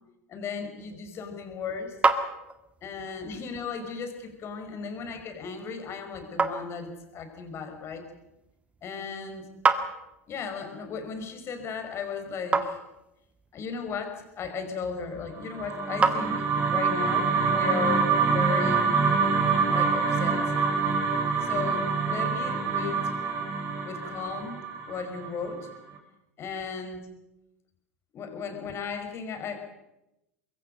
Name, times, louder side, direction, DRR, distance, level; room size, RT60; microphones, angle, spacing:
voice 1, 0.3-2.0 2.8-8.0 8.8-9.5 10.3-12.8 13.5-16.4 16.7-19.0 19.7-20.4 21.4-23.0 23.8-25.7 26.4-27.1 28.1-29.6, left 5 dB, 35° left, 6 dB, 5.3 m, -35 dB
sound 1, 1.1-16.9, right 4 dB, 15° right, 1.9 m, -33 dB
sound 2, 15.4-25.7, right 5 dB, 35° right, 5.4 m, -26 dB
24.5 x 22.0 x 6.6 m, 0.91 s
figure-of-eight pair, 85°, 8 cm